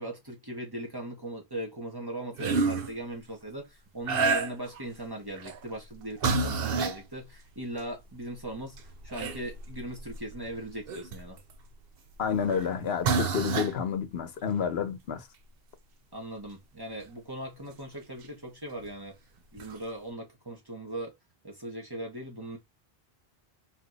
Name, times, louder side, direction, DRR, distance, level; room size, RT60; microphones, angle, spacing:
voice 1, 0.0-11.4 16.1-19.2 19.5-21.1 21.4-22.6, right 1 dB, 20° right, 1.5 m, -39 dB
sound 1, 2.4-2.9 4.1-4.8 5.3-5.6 6.2-7.0 7.9-8.0 8.4-11.5 12.5-12.7 13.0-13.8 17.0-17.1 18.8-18.9 19.6-19.7, right 4 dB, 70° right, 0.9 m, -29 dB
voice 2, 12.2-15.3, left 7 dB, 80° left, 1.1 m, -29 dB
4.1 x 3.1 x 4.0 m
omnidirectional pair, 1.0 m